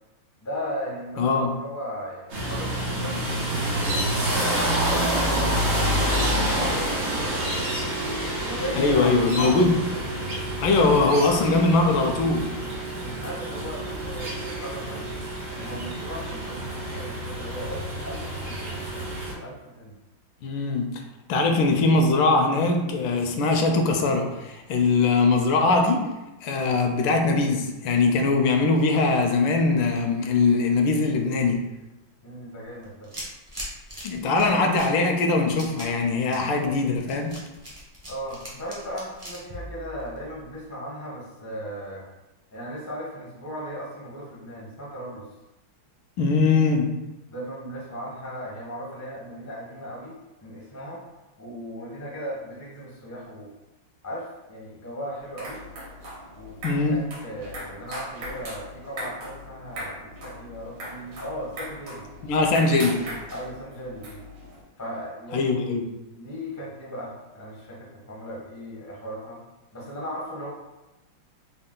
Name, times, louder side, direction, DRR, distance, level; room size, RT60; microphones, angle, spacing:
voice 1, 0.4-3.2 3.7-7.6 8.4-9.6 13.0-15.0 15.5-20.0 32.2-33.1 38.1-42.1 42.5-45.2 47.3-51.0 51.4-53.5 54.0-55.6 56.3-62.1 63.3-64.2 64.8-65.6 66.1-69.4 69.7-70.5, equal, 25° left, -5 dB, 0.3 m, -37 dB
voice 2, 1.2-1.5 8.8-9.8 10.6-12.5 20.4-20.9 21.3-26.0 26.4-31.6 34.0-37.3 46.2-46.8 56.6-57.0 62.3-63.0 65.3-65.9, left 3 dB, 80° left, 4 dB, 1.3 m, -21 dB
sound 1, 2.3-19.3, right 1 dB, 90° right, 2.0 m, -28 dB
sound 2, 32.8-40.5, equal, 35° right, 0.5 m, -40 dB
sound 3, 55.1-64.6, right 1 dB, 70° right, 1.8 m, -39 dB
4.4 x 2.2 x 3.7 m, 1.0 s
omnidirectional pair, 2.2 m